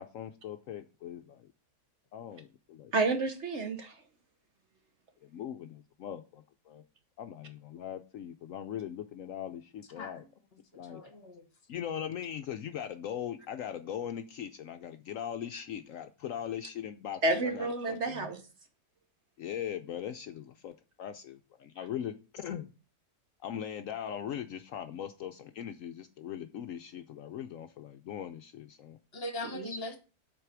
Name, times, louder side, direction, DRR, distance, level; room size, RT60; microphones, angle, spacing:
voice 1, 0.0-1.5 2.1-2.9 5.2-6.8 7.2-10.2 10.8-11.0 11.7-18.3 19.4-22.7 23.4-29.0 29.6-29.8, left 9 dB, 70° left, 0.9 m, -40 dB
voice 2, 2.9-3.9 17.2-18.4 29.5-29.7, right 3 dB, 50° right, 1.2 m, -30 dB
voice 3, 10.0-10.3 10.7-11.5 29.1-30.0, left 2 dB, 40° left, 1.4 m, -40 dB
8.0 x 4.1 x 5.9 m
omnidirectional pair, 1.7 m